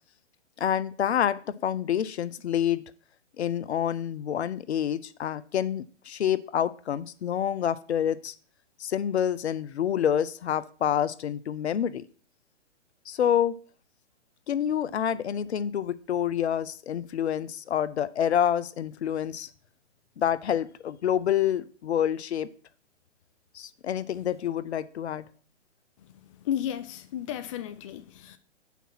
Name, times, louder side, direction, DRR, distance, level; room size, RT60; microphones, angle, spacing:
voice 1, 0.6-2.8 3.4-8.3 8.8-12.0 13.1-13.5 14.5-19.5 20.2-22.5 23.5-25.3, left 9 dB, 65° left, 0.7 m, -27 dB
voice 2, 26.4-28.4, left 10 dB, 30° left, 0.4 m, -33 dB
8.2 x 5.9 x 5.8 m
hypercardioid pair, 130°, 36 cm